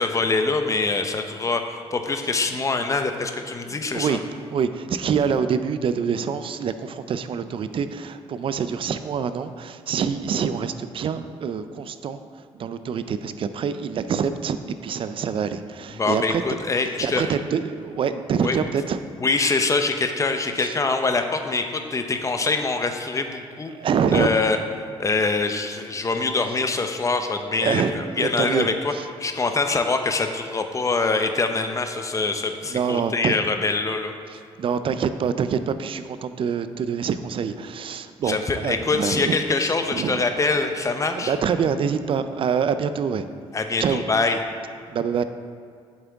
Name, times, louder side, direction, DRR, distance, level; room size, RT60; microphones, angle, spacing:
voice 1, 0.0-4.2 16.0-17.3 18.4-18.6 19.2-23.7 24.1-24.6 25.0-28.9 29.2-34.1 38.3-41.3 43.5-44.4, left 3 dB, 30° left, 6 dB, 0.7 m, -24 dB
voice 2, 3.7-4.2 4.5-14.6 14.8-16.4 16.9-19.0 20.6-20.7 23.7-24.3 27.6-29.0 32.2-33.3 34.3-40.2 41.0-43.3 43.8-44.0 44.9-45.2, right 7 dB, 55° right, 11 dB, 0.4 m, -26 dB
8.2 x 7.2 x 3.5 m, 2.2 s
cardioid pair, 75°, 11 cm